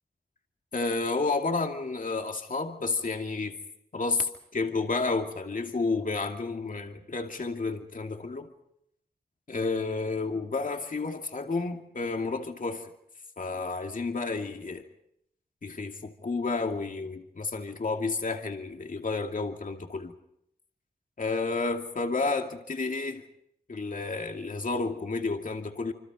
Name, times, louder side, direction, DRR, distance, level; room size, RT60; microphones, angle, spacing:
voice 1, 0.7-3.6 3.9-8.5 9.5-12.9 13.4-14.8 15.6-20.1 21.2-23.2 23.7-25.9, left 3 dB, 55° left, 3 dB, 2.4 m, -31 dB
27.0 x 25.5 x 5.3 m, 0.76 s
cardioid pair, 45°, 17 cm